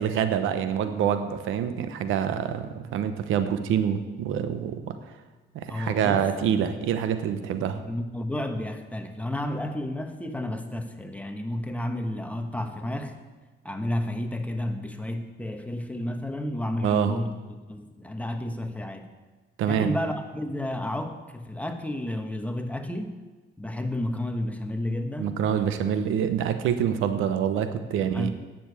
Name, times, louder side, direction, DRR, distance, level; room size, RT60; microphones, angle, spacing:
voice 1, 0.0-4.9 5.5-7.8 16.8-17.1 19.6-19.9 25.2-28.3, right 8 dB, 90° right, 10 dB, 0.9 m, -26 dB
voice 2, 5.7-6.3 7.6-13.2 13.6-17.4 17.7-19.1 19.6-23.1 23.6-25.4 28.0-28.3, left 1 dB, 5° left, 6 dB, 1.2 m, -31 dB
10.0 x 7.0 x 8.2 m, 1.2 s
cardioid pair, 90°, 20 cm